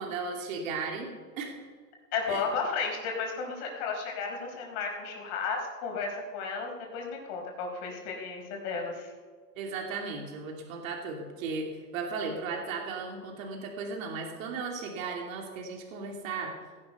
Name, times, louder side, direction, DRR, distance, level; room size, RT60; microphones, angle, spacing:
voice 1, 0.0-1.6 2.3-2.4 9.5-16.5, right 4 dB, 65° right, 1 dB, 2.9 m, -36 dB
voice 2, 2.1-9.1, left 4 dB, 50° left, 1 dB, 4.8 m, -33 dB
17.0 x 11.5 x 5.4 m, 1.5 s
hypercardioid pair, 130°, 44 cm